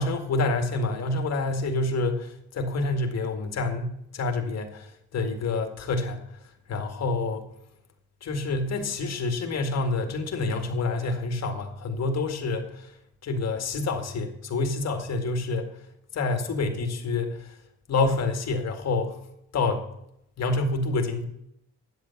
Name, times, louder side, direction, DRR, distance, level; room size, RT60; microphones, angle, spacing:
voice 1, 0.0-6.2 6.7-7.4 8.2-12.9 13.2-15.7 16.1-17.6 17.9-19.2 19.5-19.8 20.4-21.3, left 3 dB, 60° left, 5 dB, 2.1 m, -27 dB
10.5 x 8.1 x 7.1 m, 0.76 s
cardioid pair, 90°, 30 cm